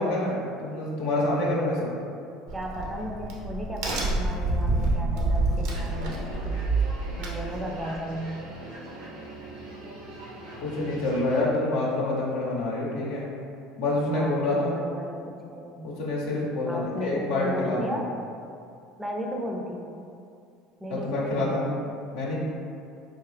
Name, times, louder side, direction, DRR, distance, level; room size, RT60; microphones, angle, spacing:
voice 1, 0.0-1.9 10.6-13.2 13.8-14.8 15.8-18.0 20.9-21.7 22.1-22.4, left 2 dB, 75° left, -5 dB, 0.8 m, -27 dB
voice 2, 2.5-6.7 7.2-8.5 14.1-15.9 16.7-18.1 19.0-20.0 20.8-21.7, equal, 15° right, 0 dB, 0.5 m, -35 dB
Crack, 2.5-7.9, right 2 dB, 70° right, 0.7 m, -27 dB
sound 1, 5.7-11.4, right 1 dB, 85° right, 1.0 m, -42 dB
3.5 x 2.7 x 3.3 m, 2.4 s
hypercardioid pair, 75°, 0 cm